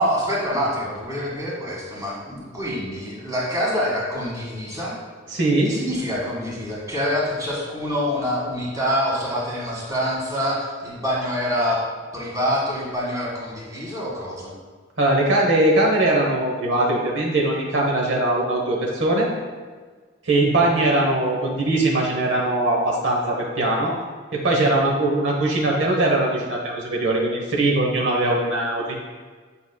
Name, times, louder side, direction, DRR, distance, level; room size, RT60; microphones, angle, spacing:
voice 1, 0.0-4.9 5.6-11.8 12.1-14.5, equal, 20° right, -5 dB, 1.7 m, -26 dB
voice 2, 5.3-5.8 15.0-19.3 20.2-23.9 24.3-29.0, right 2 dB, 70° right, -1 dB, 1.0 m, -21 dB
8.8 x 5.5 x 2.2 m, 1.5 s
head